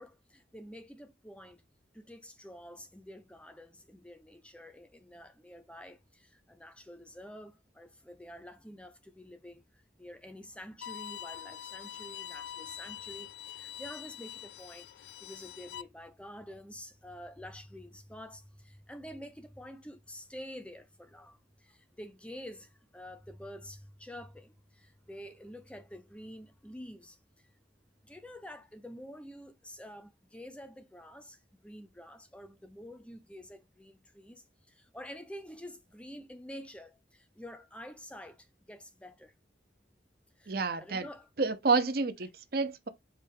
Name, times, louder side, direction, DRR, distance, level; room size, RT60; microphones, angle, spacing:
voice 1, 0.0-1.6 1.9-27.5 28.0-39.3 40.4-41.3, equal, 5° left, 0.5 m, -48 dB
Bowed string instrument, 10.8-15.8, left 11 dB, 75° left, 0.3 m, -44 dB
voice 2, 40.5-41.1 41.4-42.9, right 4 dB, 55° right, 0.6 m, -29 dB
5.0 x 2.3 x 4.5 m
head